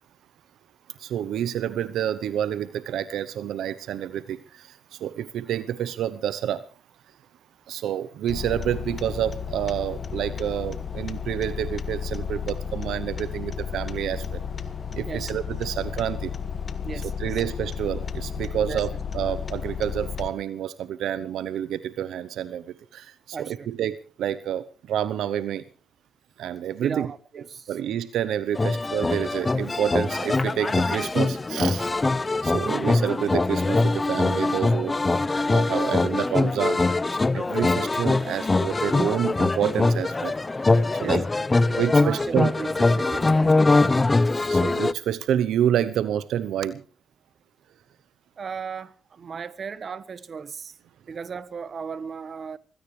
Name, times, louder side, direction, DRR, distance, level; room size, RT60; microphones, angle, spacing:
voice 1, 1.0-6.6 7.7-14.4 14.9-16.3 17.2-25.6 26.4-27.1 27.7-31.9 32.4-35.0 35.5-36.8 37.3-40.3 41.0-41.2 41.7-42.5 44.5-46.8, right 10 dB, 75° right, 0.8 m, -28 dB
sound 1, 8.3-20.3, left 7 dB, 40° left, 1.7 m, -33 dB
voice 2, 16.8-17.4 18.7-19.0 23.3-23.7 26.8-27.8 41.0-41.2 41.9-43.9 48.4-50.7 51.1-52.6, right 5 dB, 45° right, 1.3 m, -36 dB
sound 2, 28.5-44.9, left 3 dB, 20° left, 0.7 m, -22 dB
24.0 x 17.0 x 3.3 m
cardioid pair, 90°, 0 cm